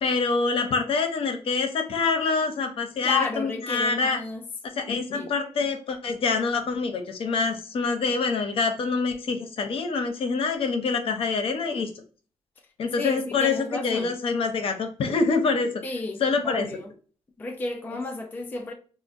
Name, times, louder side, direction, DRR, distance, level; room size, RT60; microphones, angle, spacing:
voice 1, 0.0-4.2 4.8-11.9 12.8-15.7 16.2-16.7, left 4 dB, 60° left, 0.6 m, -26 dB
voice 2, 3.0-4.4 5.1-5.3 13.0-14.1 15.8-16.9 17.4-18.7, left 3 dB, 20° left, 0.3 m, -32 dB
4.9 x 2.0 x 2.5 m
wide cardioid pair, 170°, 10 cm